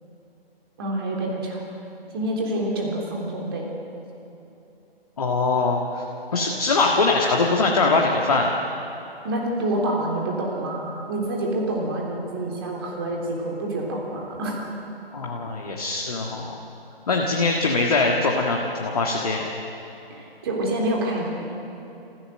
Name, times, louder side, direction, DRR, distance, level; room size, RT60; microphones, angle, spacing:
voice 1, 0.8-1.6 2.1-3.7 9.2-14.6 20.1-21.4, right 1 dB, 25° right, -2 dB, 3.4 m, -27 dB
voice 2, 5.2-6.0 6.3-8.5 15.1-16.5 17.1-19.4, left 3 dB, 40° left, -1 dB, 1.7 m, -22 dB
27.0 x 16.0 x 6.6 m, 2.9 s
figure-of-eight pair, 150°, 31 cm